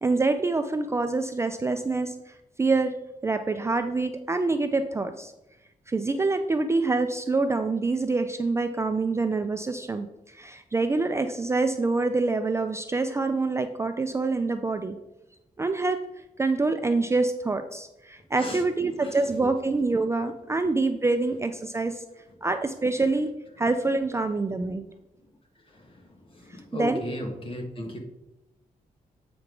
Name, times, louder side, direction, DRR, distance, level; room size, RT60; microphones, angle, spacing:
voice 1, 0.0-2.3 2.6-3.0 3.2-5.3 5.9-15.0 15.6-16.0 16.4-22.0 22.4-23.3 23.6-24.9 26.5-27.0, right 3 dB, 20° right, 7 dB, 0.3 m, -26 dB
voice 2, 26.7-28.0, left 1 dB, 40° left, 3 dB, 1.4 m, -33 dB
7.9 x 5.1 x 4.6 m, 0.94 s
wide cardioid pair, 175°, 15 cm